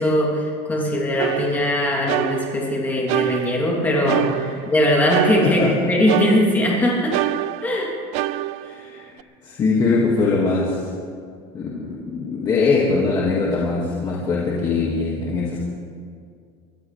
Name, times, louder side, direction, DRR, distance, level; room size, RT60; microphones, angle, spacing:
voice 1, 0.0-4.3 4.6-5.6 5.9-7.2 7.6-7.9, left 1 dB, 10° left, -3 dB, 3.1 m, -20 dB
sound 1, 1.2-2.8 3.1-4.8 5.1-6.8 7.1-9.2, right 16 dB, 55° right, 0.4 m, -26 dB
voice 2, 4.2-4.5 5.4-5.9 8.6-9.2 9.4-10.9 11.5-15.6, left 4 dB, 30° left, -5 dB, 2.1 m, -22 dB
24.0 x 15.0 x 3.4 m, 2.2 s
cardioid pair, 160°, 14 cm